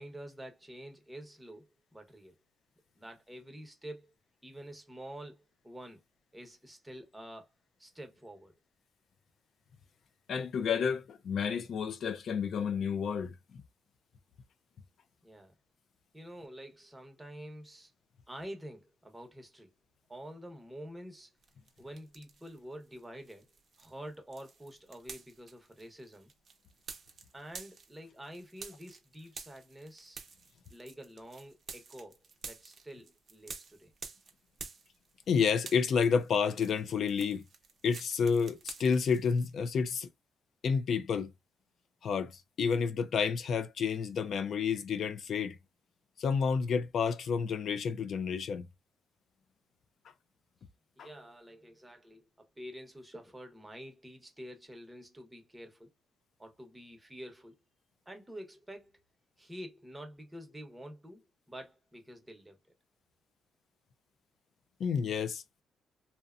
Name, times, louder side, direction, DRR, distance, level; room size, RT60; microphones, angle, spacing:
voice 1, 0.0-2.4 3.0-4.1 4.4-6.0 6.3-7.5 7.8-8.5 15.2-15.5 16.1-17.9 18.3-19.7 20.1-21.3 21.8-23.5 23.8-26.3 27.3-30.2 30.7-33.9 51.0-55.9 56.4-57.5 58.1-59.0 59.4-62.6, equal, 10° right, 0.9 m, -48 dB
voice 2, 10.3-13.6 35.3-37.5 37.8-40.1 40.6-41.3 42.0-45.6 46.2-48.7 51.0-51.1 64.8-65.4, left 6 dB, 60° left, 0.4 m, -30 dB
sound 1, 21.4-22.6 22.9-35.3 35.6-39.5, right 5 dB, 45° right, 0.7 m, -50 dB
2.7 x 2.1 x 2.4 m
cardioid pair, 90°, 0 cm